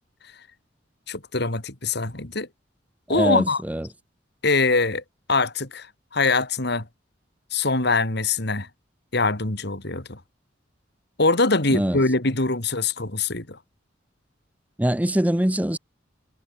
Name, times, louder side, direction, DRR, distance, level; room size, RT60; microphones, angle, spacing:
voice 1, 1.1-2.5 3.1-3.6 4.4-5.0 5.3-6.9 7.5-8.7 9.1-10.2 11.2-13.6, left 3 dB, 65° left, 3.3 m, -23 dB
voice 2, 3.1-3.9 11.7-12.0 14.8-15.8, right 1 dB, 10° right, 0.8 m, -23 dB
head